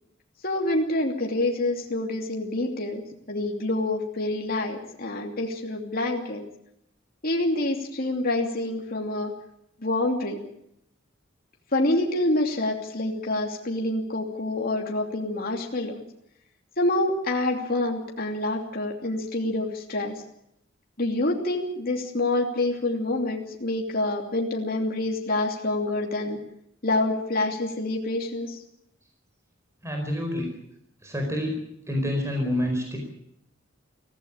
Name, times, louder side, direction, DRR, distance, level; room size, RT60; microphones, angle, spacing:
voice 1, 0.4-3.0 3.3-6.4 7.2-9.3 9.8-10.4 11.7-16.0 16.8-20.2 21.0-26.4 26.8-28.6, left 2 dB, 50° left, 0 dB, 2.9 m, -27 dB
voice 2, 29.8-30.5 31.0-31.6 31.9-33.0, left 1 dB, 15° right, 2 dB, 4.7 m, -27 dB
24.0 x 15.5 x 8.7 m, 0.76 s
head